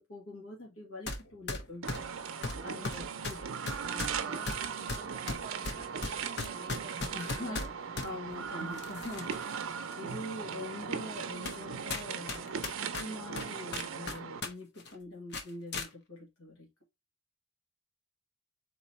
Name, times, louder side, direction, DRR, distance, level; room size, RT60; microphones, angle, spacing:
voice 1, 0.0-2.1 2.6-4.1 7.1-9.5 10.0-12.5 12.8-16.7, left 1 dB, 85° left, 1.9 m, -44 dB
sound 1, 1.1-1.2 1.5-8.1 8.7-9.5 9.9-10.0 10.7-10.8 11.4-11.6 11.9-14.5 14.8-14.9 15.3-15.9, left 3 dB, 50° left, 0.8 m, -37 dB
sound 2, 1.8-14.4, right 6 dB, 70° right, 0.6 m, -38 dB
voice 2, 2.5-3.1 3.8-7.7 10.3-10.9, right 2 dB, 25° right, 0.4 m, -51 dB
3.9 x 3.0 x 4.1 m
head